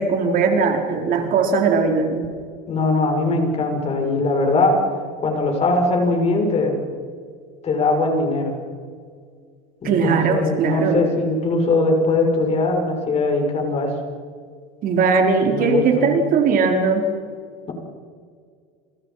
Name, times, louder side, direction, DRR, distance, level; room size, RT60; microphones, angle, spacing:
voice 1, 0.0-2.3 9.8-11.0 14.8-17.1, right 4 dB, 45° right, 3 dB, 4.7 m, -19 dB
voice 2, 2.7-4.8 5.2-6.8 7.6-8.5 9.8-13.9 15.5-16.2, left 2 dB, 30° left, 3 dB, 6.9 m, -20 dB
29.5 x 29.0 x 5.9 m, 2.1 s
supercardioid pair, 130°, 20 cm